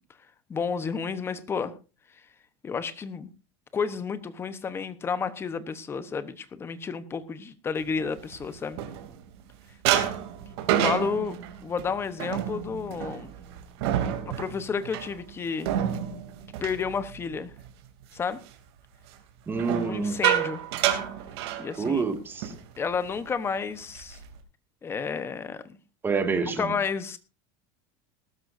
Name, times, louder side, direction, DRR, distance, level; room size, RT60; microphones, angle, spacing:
voice 1, 0.5-1.7 2.6-3.3 3.7-8.8 10.7-11.4 11.6-13.3 14.3-15.7 16.6-17.5 18.1-18.4 19.8-20.6 21.6-22.0 22.8-24.2 24.8-25.8 26.6-27.2, left 5 dB, 20° left, 13 dB, 1.0 m, -31 dB
sound 1, 8.0-9.4 9.8-17.7 18.0-18.4 19.5-22.1 22.4-22.6 22.9-23.2 23.7-24.4, right 11 dB, 80° right, 3.0 m, -29 dB
voice 2, 19.5-20.2 21.8-22.5 26.0-26.7, right 5 dB, 15° right, 6 dB, 2.0 m, -27 dB
19.0 x 12.5 x 2.7 m, 0.32 s
cardioid pair, 160°, 13 cm